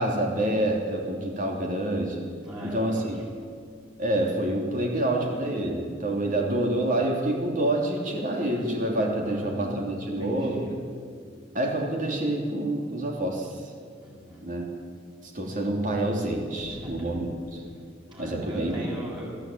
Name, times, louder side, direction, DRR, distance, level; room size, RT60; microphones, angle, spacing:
voice 1, 0.0-2.2 2.6-3.2 4.0-10.7 11.5-13.5 14.4-14.7 15.2-17.6 18.2-18.9, right 1 dB, 45° right, 1 dB, 3.1 m, -27 dB
voice 2, 2.4-3.1 9.2-9.8 10.2-10.7 14.0-14.4 16.6-17.1 18.1-19.3, right 1 dB, 25° right, -6 dB, 7.8 m, -39 dB
21.5 x 14.0 x 9.2 m, 2.1 s
head